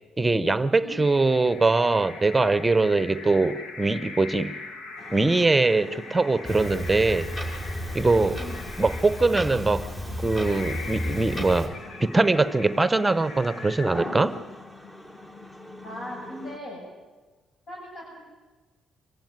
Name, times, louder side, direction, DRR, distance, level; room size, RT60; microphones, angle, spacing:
voice 1, 0.2-4.6 5.1-7.3 7.9-8.4 8.8-9.9 10.2-11.7 12.0-14.4, right 3 dB, 15° right, 13 dB, 0.9 m, -22 dB
sound 1, 1.0-14.5, left 3 dB, 80° left, 1.7 m, -42 dB
sound 2, 5.0-16.6, left 1 dB, 15° left, 1.5 m, -42 dB
Clock, 6.4-11.7, equal, 30° left, 6.4 m, -33 dB
voice 2, 8.3-8.7 15.8-16.8 17.7-18.2, equal, 60° left, -4 dB, 7.9 m, -39 dB
25.5 x 15.0 x 9.5 m, 1.3 s
cardioid pair, 90°, 0 cm